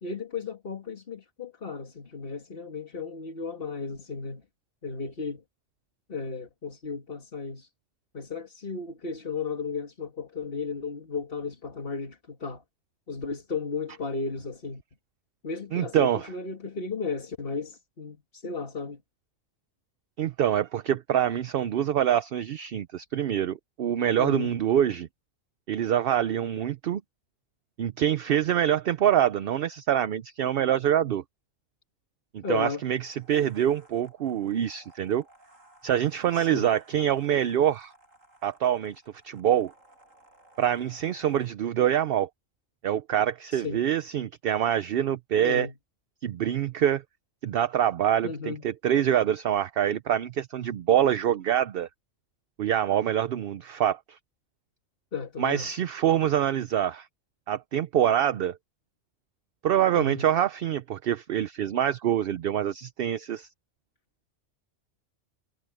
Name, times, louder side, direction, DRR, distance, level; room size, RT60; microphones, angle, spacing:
voice 1, 0.0-4.4 4.8-5.4 6.1-7.7 8.1-12.6 13.1-14.8 15.4-19.0 24.2-24.5 32.4-32.8 36.3-36.7 43.5-43.8 45.4-45.7 48.2-48.7 55.1-55.8 59.9-60.3, left 4 dB, 45° left, 2.2 m, -34 dB
voice 2, 15.7-16.2 20.2-25.1 25.7-27.0 27.8-31.2 32.3-35.2 35.8-37.9 38.4-39.7 40.6-42.3 42.8-45.7 46.2-47.0 47.4-51.9 52.6-54.2 55.4-57.1 57.5-58.6 59.6-63.5, right 10 dB, 60° right, 0.7 m, -25 dB
sound 1, 32.4-41.5, right 1 dB, 85° right, 7.4 m, -58 dB
omnidirectional pair, 1.3 m